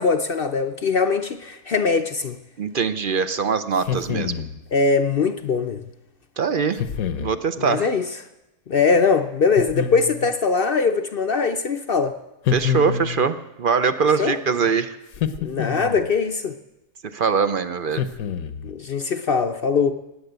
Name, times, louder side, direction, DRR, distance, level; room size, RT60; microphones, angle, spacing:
voice 1, 0.0-2.4 4.7-5.9 7.6-8.0 8.7-12.1 14.2-14.4 15.4-16.5 18.6-19.9, left 5 dB, 50° left, 8 dB, 0.7 m, -21 dB
voice 2, 2.6-4.4 6.4-6.8 7.2-7.9 12.5-15.0 17.1-18.0, right 5 dB, 50° right, 12 dB, 0.7 m, -22 dB
sound 1, 3.8-4.6 6.8-7.4 9.6-10.3 12.5-13.3 15.1-16.1 17.9-18.7, left 8 dB, 75° left, 1.3 m, -27 dB
19.5 x 8.5 x 8.0 m, 0.99 s
omnidirectional pair, 1.5 m